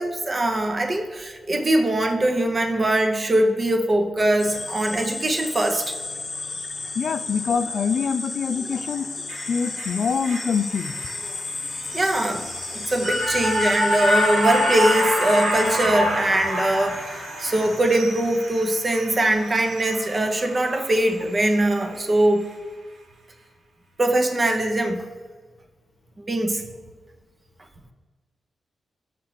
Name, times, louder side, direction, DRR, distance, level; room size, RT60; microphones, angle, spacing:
voice 1, 0.0-6.0 11.9-12.5 12.7-22.5 24.0-25.1 26.3-26.6, right 1 dB, 25° right, 5 dB, 0.8 m, -22 dB
sound 1, 4.4-18.3, left 3 dB, 30° left, 0.9 m, -34 dB
voice 2, 7.0-9.1 9.5-10.9 15.9-16.1, left 6 dB, 60° left, 11 dB, 0.4 m, -25 dB
sound 2, 9.3-21.6 22.0-22.1, equal, 80° right, 2.7 m, -27 dB
6.5 x 5.9 x 7.2 m, 1.5 s
wide cardioid pair, 150°, 0 cm